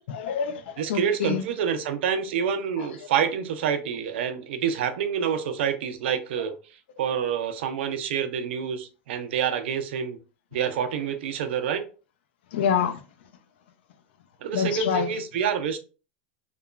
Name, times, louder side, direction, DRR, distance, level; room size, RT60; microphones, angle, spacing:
voice 1, 0.1-1.4 2.8-2.9 12.5-12.9 14.5-15.1, left 7 dB, 85° left, 0.4 m, -26 dB
voice 2, 0.8-6.5 7.0-10.2 10.5-11.8 14.4-15.8, right 7 dB, 85° right, 0.5 m, -27 dB
2.9 x 2.3 x 2.3 m
supercardioid pair, 150°, 6 cm